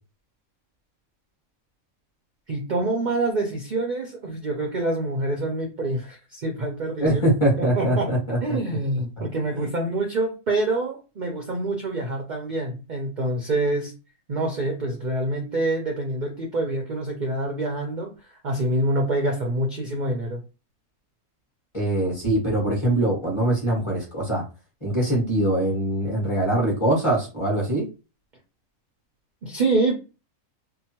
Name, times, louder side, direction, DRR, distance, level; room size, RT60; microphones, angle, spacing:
voice 1, 2.5-8.1 8.4-13.9 14.3-18.1 18.4-20.4 29.4-29.9, right 2 dB, 55° right, 1 dB, 0.5 m, -26 dB
voice 2, 7.0-8.6 9.6-9.7 21.7-24.4 24.8-27.8, right 1 dB, 25° left, -3 dB, 1.0 m, -23 dB
2.9 x 2.2 x 2.8 m, 0.31 s
omnidirectional pair, 1.5 m